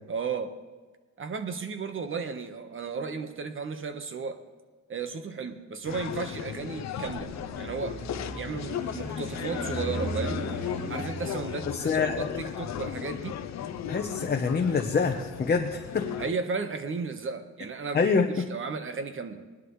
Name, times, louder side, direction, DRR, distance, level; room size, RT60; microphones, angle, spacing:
voice 1, 0.1-0.5 1.2-4.4 4.9-7.3 7.6-8.0 8.3-10.4 10.9-13.4 16.2-19.4, right 5 dB, 45° right, 8 dB, 1.3 m, -34 dB
sound 1, 5.9-16.3, left 9 dB, 65° left, 0.7 m, -36 dB
sound 2, 6.9-14.1, right 1 dB, 75° right, 4.0 m, -38 dB
voice 2, 11.7-12.3 13.9-16.1 17.9-18.5, left 5 dB, 30° left, 3 dB, 1.0 m, -26 dB
19.5 x 11.0 x 3.2 m, 1.3 s
cardioid pair, 90°, 30 cm